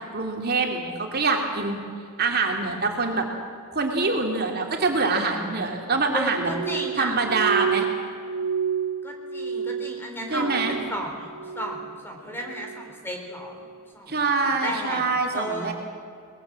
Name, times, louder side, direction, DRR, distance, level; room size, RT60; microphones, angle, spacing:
voice 1, 0.1-1.8 2.2-3.3 3.7-6.5 7.0-7.9 10.3-10.8 14.1-15.7, right 3 dB, 45° right, 2 dB, 2.7 m, -24 dB
voice 2, 6.1-7.1 9.0-13.6 13.9-15.0 15.3-15.7, equal, 10° left, 2 dB, 3.7 m, -33 dB
Glass, 6.4-11.0 11.3-11.9 12.3-12.9 13.5-13.7, right 7 dB, 65° right, 0.9 m, -30 dB
23.0 x 20.5 x 7.6 m, 2.4 s
head